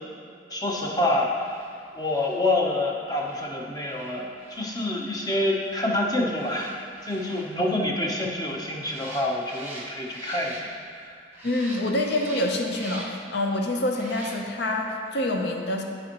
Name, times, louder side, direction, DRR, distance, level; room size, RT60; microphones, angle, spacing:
voice 1, 0.5-1.5 1.9-6.7 7.0-11.1, left 1 dB, 20° left, -1 dB, 0.8 m, -27 dB
sound 1, 1.3-11.0 11.3-13.3 13.9-14.7 15.1-15.2, right 1 dB, 10° right, 1.0 m, -45 dB
voice 2, 11.4-15.8, left 1 dB, 65° left, 2 dB, 0.7 m, -26 dB
11.5 x 4.4 x 2.9 m, 2.5 s
head